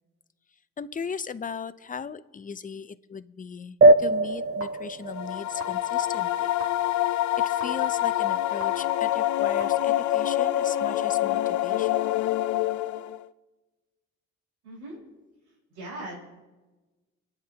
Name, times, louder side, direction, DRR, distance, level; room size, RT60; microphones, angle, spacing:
voice 1, 0.8-6.5 7.4-12.0, left 6 dB, 25° left, 13 dB, 0.6 m, -37 dB
sound 1, 3.8-6.8, right 2 dB, 35° right, 0.4 m, -22 dB
sound 2, 4.0-11.2, right 1 dB, 50° right, 2.3 m, -48 dB
sound 3, 5.1-13.3, left 13 dB, 65° left, 0.6 m, -26 dB
voice 2, 14.6-15.0 15.7-16.2, right 1 dB, 80° right, -4 dB, 5.0 m, -38 dB
28.5 x 9.7 x 2.9 m, 1.2 s
cardioid pair, 90°, 30 cm